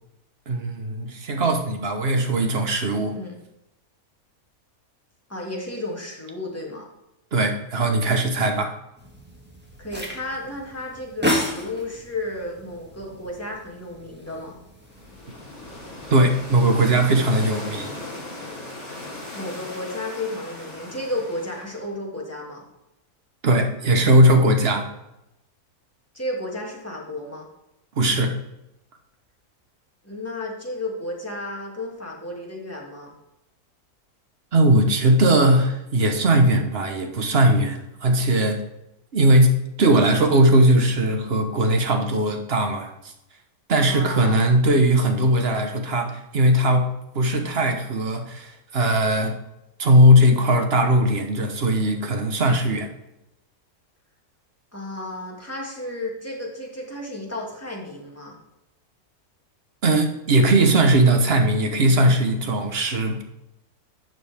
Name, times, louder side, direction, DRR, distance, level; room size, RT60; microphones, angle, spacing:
voice 1, 0.5-3.2 7.3-8.7 16.1-17.9 23.4-24.9 28.0-28.3 34.5-38.6 39.1-42.9 43.7-49.3 49.8-52.9 59.8-63.2, right 1 dB, 45° right, 5 dB, 1.3 m, -19 dB
voice 2, 5.3-6.9 9.8-14.6 19.3-22.6 26.1-27.5 30.0-33.1 43.9-44.4 54.7-58.4, left 1 dB, 10° left, -2 dB, 2.0 m, -33 dB
sound 1, 9.0-16.7, left 1 dB, 5° right, 1.6 m, -33 dB
sound 2, 14.9-21.9, left 2 dB, 65° left, 3.8 m, -37 dB
11.5 x 6.8 x 3.6 m, 0.90 s
omnidirectional pair, 1.6 m